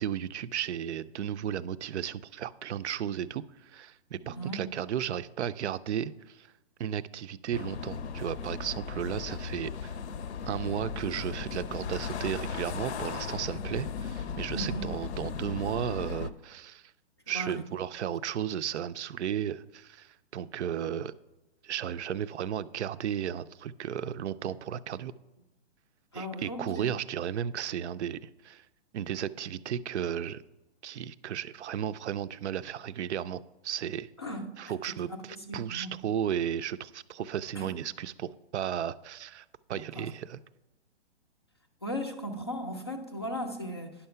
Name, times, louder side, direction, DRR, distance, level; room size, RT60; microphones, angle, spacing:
voice 1, 0.0-6.5 6.8-10.0 10.4-16.9 17.3-21.1 21.6-25.1 26.1-28.7 28.9-30.4 30.8-34.1 34.6-40.4, right 9 dB, 75° right, 15 dB, 0.5 m, -34 dB
voice 2, 4.2-4.6 13.5-13.6 14.5-14.9 17.3-17.6 26.1-26.9 34.2-36.0 37.5-37.7 39.9-40.1 41.8-43.9, equal, 25° left, 5 dB, 0.4 m, -37 dB
sound 1, 7.5-16.3, left 6 dB, 70° left, 0.6 m, -37 dB
10.0 x 5.7 x 5.6 m, 1.0 s
hypercardioid pair, 170°, 34 cm